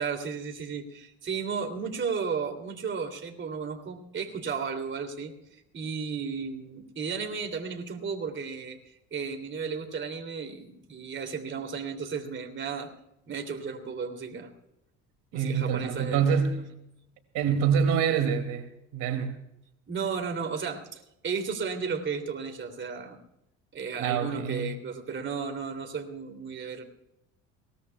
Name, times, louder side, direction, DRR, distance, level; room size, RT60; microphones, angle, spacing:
voice 1, 0.0-5.3 5.7-12.9 13.3-14.5 15.3-16.4 19.9-23.2 23.7-26.8, right 5 dB, 35° right, 3.0 m, -34 dB
voice 2, 15.3-16.6 17.3-18.7 18.9-19.4 24.0-24.7, right 7 dB, 70° right, 2.6 m, -26 dB
22.0 x 19.0 x 2.3 m
supercardioid pair, 95°, 33 cm